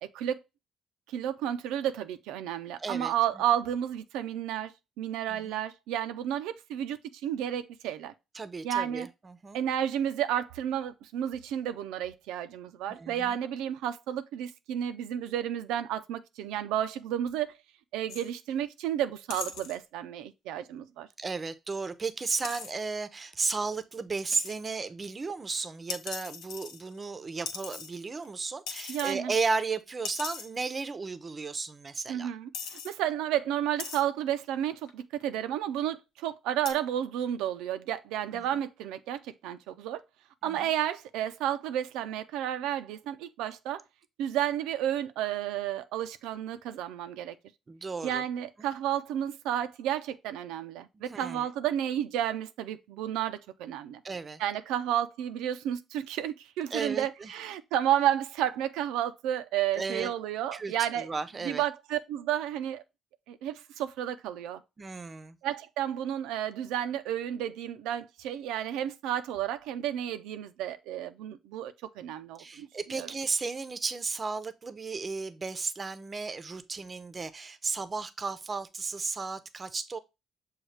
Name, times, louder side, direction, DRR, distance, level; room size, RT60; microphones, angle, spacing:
voice 1, 0.0-0.4 1.1-4.7 5.0-8.1 8.6-9.1 9.5-17.6 17.9-21.1 28.9-29.3 32.1-40.0 40.4-43.8 44.2-47.3 48.0-54.0 54.4-61.1 61.4-62.8 63.3-64.6 65.4-73.1, right 11 dB, 85° right, 0.4 m, -32 dB
voice 2, 2.8-3.1 5.3-5.6 8.3-9.6 12.9-13.4 21.2-32.3 38.3-38.4 40.4-40.7 47.7-48.2 48.6-48.7 51.1-51.4 54.0-54.4 56.7-57.3 59.7-60.1 60.5-61.6 64.8-65.4 72.4-80.0, right 4 dB, 35° right, 0.6 m, -34 dB
sound 1, 18.1-18.3 19.3-19.8 22.4-22.7 24.3-24.6 25.9-27.1 27.5-28.3 28.7-29.2 29.5-29.6 30.0-30.5 31.4-31.5 32.1-32.2 32.5-32.9 33.8-34.0 34.9-35.2 36.7-36.8, left 6 dB, 85° left, 0.6 m, -39 dB
6.4 x 2.3 x 3.2 m
supercardioid pair, 75°, 0 cm